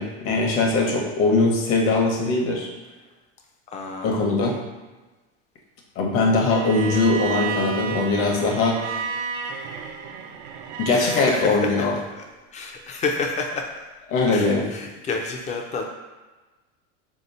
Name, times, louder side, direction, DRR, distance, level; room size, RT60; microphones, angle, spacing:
voice 1, 0.0-2.7 4.0-4.6 6.0-9.0 10.8-11.9 14.1-14.7, left 3 dB, 45° left, 0 dB, 0.9 m, -21 dB
voice 2, 3.7-4.2 10.9-11.9 12.1-12.2 12.5-13.9 14.3-15.9, left 4 dB, 25° left, 2 dB, 0.5 m, -29 dB
Bowed string instrument, 6.5-11.4, right 4 dB, 65° right, 0.5 m, -31 dB
3.0 x 2.9 x 4.2 m, 1.2 s
supercardioid pair, 140°, 30 cm